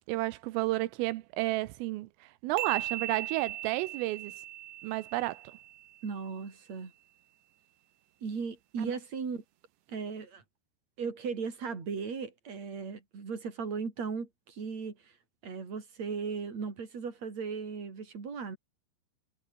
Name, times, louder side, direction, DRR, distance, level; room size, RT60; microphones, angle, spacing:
voice 1, 0.1-4.3 4.8-5.4 8.8-8.9, right 18 dB, 85° right, 3.6 m, -32 dB
sound 1, 2.6-6.1, right 13 dB, 70° right, 3.6 m, -39 dB
voice 2, 6.0-6.9 8.2-9.4 9.9-10.4 11.0-15.0 15.4-18.6, right 5 dB, 35° right, 5.5 m, -37 dB
omnidirectional pair, 5.8 m